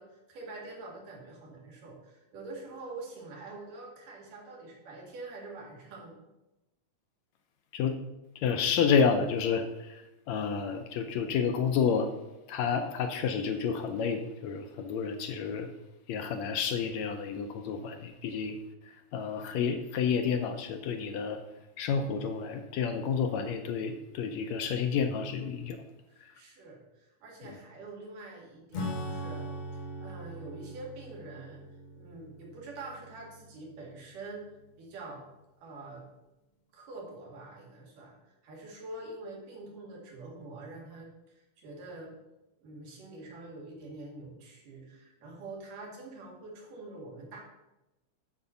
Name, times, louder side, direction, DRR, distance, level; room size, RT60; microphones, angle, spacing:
voice 1, 0.0-6.2 26.1-31.6 31.9-34.4 34.8-35.2 35.6-36.1 36.7-42.2 42.6-47.4, right 2 dB, 90° right, -2 dB, 3.8 m, -45 dB
voice 2, 8.4-10.0 10.3-12.1 12.5-15.7 16.1-18.6 19.1-21.4 21.8-25.8, left 6 dB, 75° left, 6 dB, 1.7 m, -30 dB
Acoustic guitar / Strum, 28.7-34.7, equal, 60° left, 1.6 m, -41 dB
9.7 x 4.4 x 6.9 m, 0.96 s
omnidirectional pair, 3.6 m